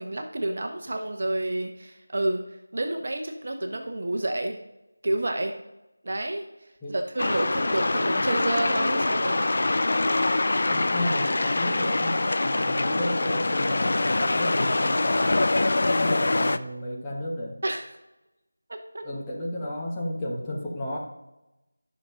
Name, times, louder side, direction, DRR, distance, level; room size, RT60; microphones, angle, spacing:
voice 1, 0.0-2.4 2.7-4.6 5.0-5.5 6.0-6.5 6.9-9.4 17.6-17.8 18.7-19.0, right 1 dB, 40° right, 4 dB, 1.1 m, -29 dB
sound 1, 7.2-16.6, left 2 dB, 45° left, 0.5 m, -24 dB
voice 2, 10.7-15.3 15.9-17.6 19.0-21.0, left 1 dB, 10° left, -6 dB, 1.3 m, -33 dB
11.5 x 6.2 x 5.1 m, 0.95 s
figure-of-eight pair, 165°, 0 cm